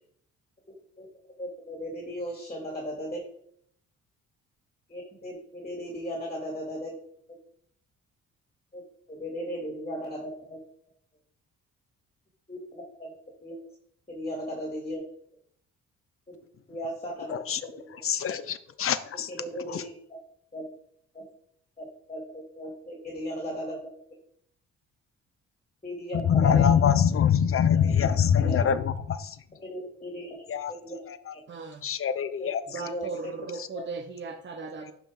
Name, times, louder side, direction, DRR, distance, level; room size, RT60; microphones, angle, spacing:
voice 1, 1.4-3.2 4.9-6.9 8.7-8.8 9.1-10.6 12.5-13.1 13.4-13.6 14.1-15.0 16.3-16.4 16.7-18.0 18.3-18.4 19.3-20.2 20.5-20.7 21.1-21.2 21.8-23.8 25.8-26.7 27.7-27.9 28.4-28.6 29.6-30.3 30.7-31.0 32.4-32.5 32.8-33.3 33.7-33.8, equal, 20° left, -1 dB, 2.4 m, -36 dB
voice 2, 18.0-19.3 19.7-19.8 26.3-29.4 30.5-30.7 31.1-31.2 31.8-32.6, left 8 dB, 45° left, 12 dB, 0.7 m, -24 dB
voice 3, 31.5-31.9 32.7-34.9, right 4 dB, 40° right, 5 dB, 0.9 m, -37 dB
11.5 x 4.7 x 3.7 m, 0.67 s
cardioid pair, 90°, 30 cm